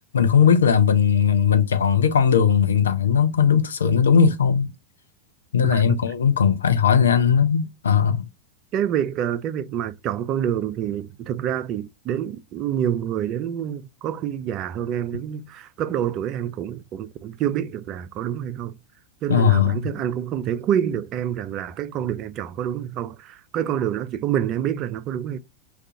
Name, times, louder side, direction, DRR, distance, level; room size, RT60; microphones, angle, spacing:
voice 1, 0.1-4.7 5.5-8.3 19.3-19.9, left 7 dB, 70° left, 0.4 m, -18 dB
voice 2, 5.6-6.0 8.7-18.7 19.2-25.4, right 10 dB, 35° right, 0.3 m, -27 dB
2.4 x 2.3 x 2.6 m
figure-of-eight pair, 90°, 0 cm